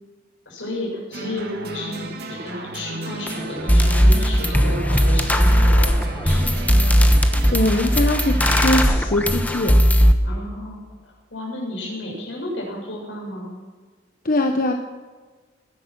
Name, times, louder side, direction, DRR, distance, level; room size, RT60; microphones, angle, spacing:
voice 1, 0.5-6.4 10.2-13.5, left 1 dB, 85° left, -2 dB, 7.0 m, -32 dB
sound 1, 1.1-8.9, right 3 dB, 60° right, 1.7 m, -34 dB
sound 2, 3.3-3.4 3.7-10.1, equal, 10° left, 1.0 m, -17 dB
voice 2, 7.5-9.8 14.2-14.7, left 1 dB, 50° left, 4 dB, 1.1 m, -21 dB
20.5 x 10.5 x 6.3 m, 1.4 s
head